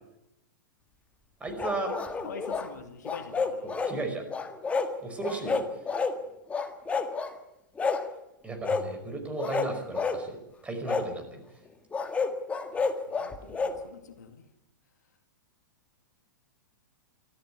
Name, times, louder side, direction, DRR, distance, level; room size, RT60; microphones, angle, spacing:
voice 1, 1.4-1.9 3.6-4.2 5.0-5.6 8.4-10.4 10.6-11.4, right 2 dB, 10° right, 5 dB, 5.4 m, -34 dB
sound 1, 1.6-2.7 3.0-4.0 4.3-4.9 5.2-6.2 6.5-7.3 7.8-8.1 8.6-8.9 9.4-10.2 10.9-11.1 11.9-13.8, left 4 dB, 10° left, 1.7 m, -30 dB
voice 2, 2.2-3.8 12.7-14.5, left 5 dB, 60° left, 7 dB, 2.2 m, -45 dB
24.5 x 14.5 x 9.5 m, 0.88 s
figure-of-eight pair, 105°, 10 cm